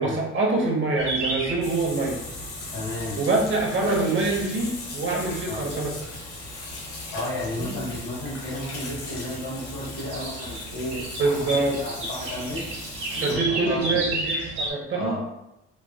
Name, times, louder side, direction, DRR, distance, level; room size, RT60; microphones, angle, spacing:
voice 1, 0.0-2.2 3.1-6.1 7.5-7.8 11.2-11.8 13.1-15.2, right 3 dB, 35° right, 0 dB, 0.9 m, -25 dB
sound 1, 1.0-14.7, right 1 dB, 60° right, 1.1 m, -35 dB
Water tap faucet / Sink (filling or washing), 1.6-13.3, left 3 dB, 90° left, 0.8 m, -39 dB
voice 2, 2.7-3.2 5.4-5.7 7.1-12.6 13.1-13.4 13.6-14.0 14.9-15.2, left 1 dB, 65° left, -10 dB, 1.3 m, -33 dB
3.1 x 2.4 x 2.2 m, 0.86 s
hypercardioid pair, 60°, 34 cm